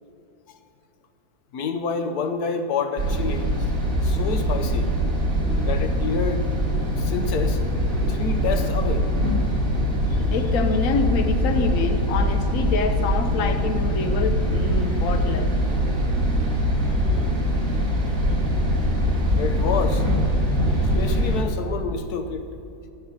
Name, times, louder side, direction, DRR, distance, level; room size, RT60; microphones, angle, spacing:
voice 1, 1.5-3.7 4.0-4.9 5.6-6.5 7.0-7.6 8.1-9.1 19.4-20.1 21.0-22.5, left 5 dB, 80° left, 8 dB, 1.4 m, -28 dB
sound 1, 3.0-21.4, equal, 60° right, 2.4 m, -22 dB
voice 2, 10.0-15.5, left 4 dB, 60° left, 7 dB, 1.3 m, -26 dB
14.5 x 8.0 x 8.7 m, 2.7 s
omnidirectional pair, 1.6 m